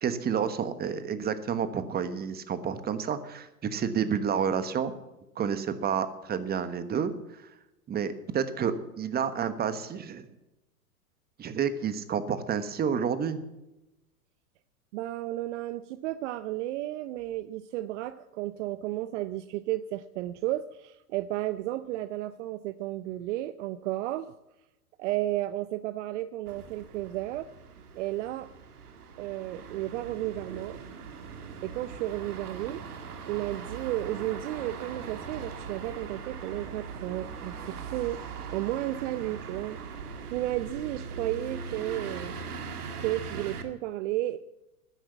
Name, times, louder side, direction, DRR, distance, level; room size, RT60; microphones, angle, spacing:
voice 1, 0.0-4.9 5.4-7.1 7.9-10.2 11.4-13.4, right 7 dB, 20° right, 12 dB, 1.3 m, -30 dB
voice 2, 14.9-24.3 25.0-27.5 28.0-28.5 29.2-30.8 31.6-32.8 33.3-38.2 38.5-39.8 40.3-42.3 43.0-44.4, right 15 dB, 55° right, 14 dB, 0.7 m, -33 dB
sound 1, 26.5-43.6, right 5 dB, 80° right, 2.0 m, -40 dB
12.5 x 10.5 x 7.0 m, 0.96 s
hypercardioid pair, 110°, 44 cm